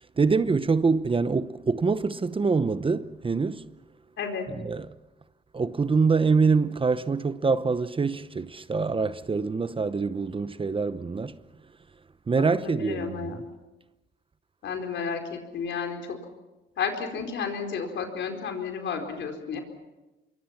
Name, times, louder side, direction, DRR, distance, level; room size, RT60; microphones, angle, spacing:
voice 1, 0.2-3.6 4.6-4.9 5.5-11.4 12.3-13.4, right 4 dB, 25° right, 0.8 m, -25 dB
voice 2, 4.2-4.5 12.4-13.4 14.6-16.0 16.8-19.6, left 6 dB, 70° left, 4.6 m, -32 dB
26.0 x 23.0 x 5.9 m
cardioid pair, 90°, 20 cm